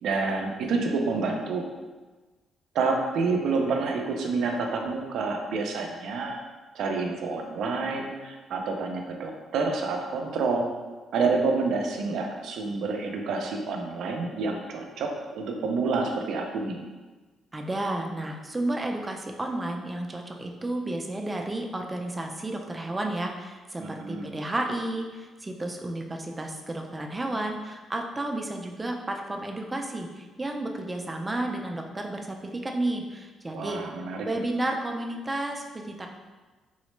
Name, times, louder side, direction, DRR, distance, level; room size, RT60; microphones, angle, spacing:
voice 1, 0.0-1.7 2.7-6.4 6.7-10.7 11.1-16.8 23.8-24.3 33.5-34.4, right 4 dB, 75° right, 2 dB, 0.4 m, -28 dB
voice 2, 17.5-33.8 34.3-36.1, right 1 dB, 20° right, 2 dB, 0.4 m, -32 dB
3.8 x 2.1 x 3.1 m, 1.3 s
cardioid pair, 90°, 0 cm